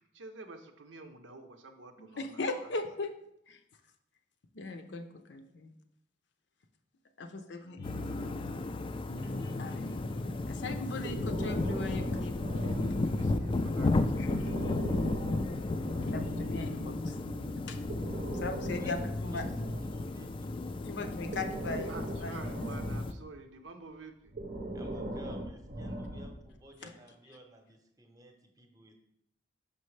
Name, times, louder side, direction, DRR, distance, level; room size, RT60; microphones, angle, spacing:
voice 1, 0.1-2.7 13.0-14.5 21.9-24.3, right 3 dB, 90° right, 7 dB, 0.7 m, -49 dB
voice 2, 2.0-3.1 3.5-3.6 4.5-5.7 7.2-7.8 9.6-9.9 10.5-12.6 14.2-14.3 16.0-17.2 17.7-17.8 18.4-19.4 20.8-22.4 26.8-26.9, left 3 dB, 65° left, 7 dB, 0.6 m, -38 dB
sound 1, 7.8-8.7 9.0-12.1 12.4-15.6 15.9-18.6, left 1 dB, 85° left, 1.0 m, -43 dB
sound 2, 7.8-23.1, left 2 dB, 30° left, 0.3 m, -34 dB
Breathing, 11.0-13.5 14.2-16.6 17.7-20.5 21.1-23.3 24.3-26.6, right 1 dB, 50° right, 0.7 m, -40 dB
voice 3, 19.3-20.7 24.7-28.9, right 1 dB, 20° right, 4 dB, 0.8 m, -54 dB
5.9 x 5.4 x 3.2 m, 0.79 s
head